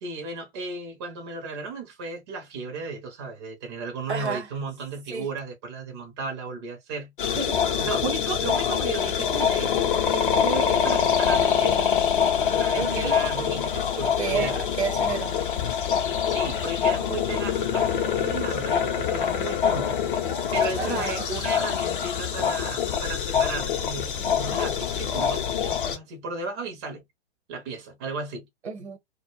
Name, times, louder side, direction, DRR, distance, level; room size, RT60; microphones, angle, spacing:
voice 1, 0.0-7.1 7.8-11.9 12.5-14.5 16.3-20.0 20.5-27.0 27.5-28.5, right 3 dB, 25° right, 0.5 m, -34 dB
voice 2, 4.1-4.5 5.1-5.3 7.4-7.6 12.8-13.2 14.2-15.4 16.8-16.9 20.8-21.4 24.4-24.6 28.6-29.0, right 5 dB, 70° right, 0.8 m, -31 dB
sound 1, 7.2-26.0, left 8 dB, 50° left, 0.6 m, -25 dB
2.1 x 2.1 x 3.0 m
figure-of-eight pair, 115°, 34 cm